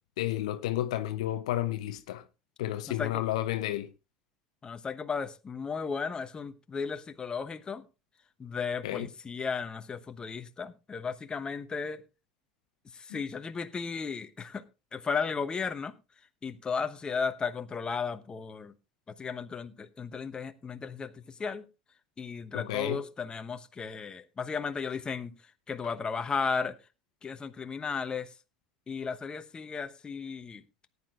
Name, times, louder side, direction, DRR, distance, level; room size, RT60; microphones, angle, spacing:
voice 1, 0.2-2.2 2.6-3.9 8.8-9.1 13.1-13.2 22.5-23.0, left 13 dB, 70° left, 0.7 m, -31 dB
voice 2, 2.9-3.2 4.6-7.8 8.4-12.0 13.0-14.6 14.9-15.9 16.4-18.7 19.2-21.6 22.2-25.3 25.7-26.8 27.2-28.3 28.9-30.6, left 5 dB, 25° left, 1.0 m, -35 dB
18.5 x 9.8 x 2.4 m
hypercardioid pair, 75°, 3 cm